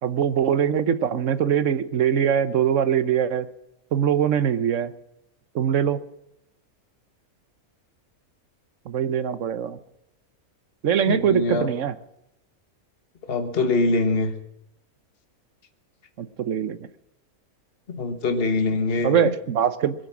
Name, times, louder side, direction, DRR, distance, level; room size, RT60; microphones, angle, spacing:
voice 1, 0.0-3.5 3.9-4.9 5.5-6.0 8.9-9.8 10.8-11.9 16.2-16.8 19.0-19.9, right 8 dB, 60° right, 1.2 m, -22 dB
voice 2, 11.1-11.7 13.3-14.3 17.9-19.3, left 3 dB, 45° left, 1.6 m, -23 dB
22.5 x 9.4 x 6.1 m
omnidirectional pair, 1.5 m